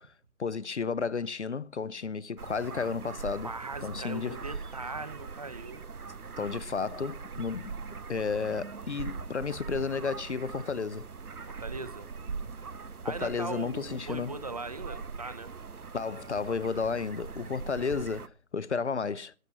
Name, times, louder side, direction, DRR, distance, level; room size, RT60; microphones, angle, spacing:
voice 1, 0.4-3.5 3.8-4.4 6.4-7.7 8.1-11.1 13.1-14.4 15.9-19.3, left 5 dB, 50° left, 0.8 m, -32 dB
sound 1, 2.4-18.3, right 5 dB, 80° right, 1.4 m, -41 dB
voice 2, 3.4-5.8 11.5-12.1 13.0-15.5 17.8-17.9, right 3 dB, 25° right, 0.9 m, -40 dB
15.0 x 12.0 x 5.3 m
figure-of-eight pair, 160°, 44 cm